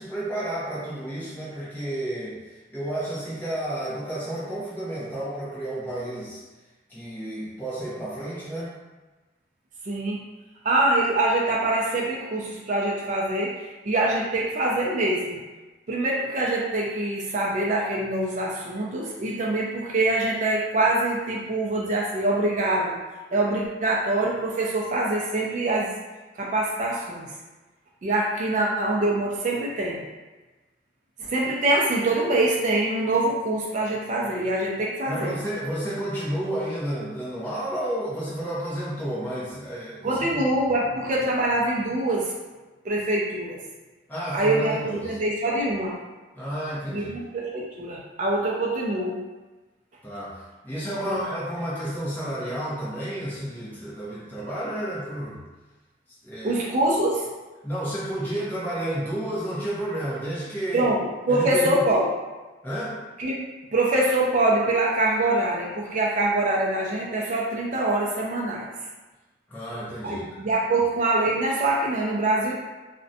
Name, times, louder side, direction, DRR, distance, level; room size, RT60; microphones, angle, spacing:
voice 1, 0.0-6.4 6.9-8.7 35.1-40.4 44.1-45.2 46.3-47.2 50.0-55.4 56.2-56.6 57.6-60.9 61.3-61.8 62.6-63.0 69.5-70.3, right 1 dB, 10° left, -10 dB, 0.6 m, -31 dB
voice 2, 9.8-10.2 10.6-15.4 15.9-23.0 23.3-25.9 26.4-27.3 28.0-30.0 31.2-35.3 40.0-42.3 42.8-43.6 44.3-46.0 46.9-49.2 51.1-51.2 56.4-57.2 60.7-62.1 63.2-63.4 63.7-68.7 70.0-72.5, right 2 dB, 40° right, -3 dB, 0.3 m, -24 dB
2.5 x 2.1 x 2.6 m, 1.2 s
head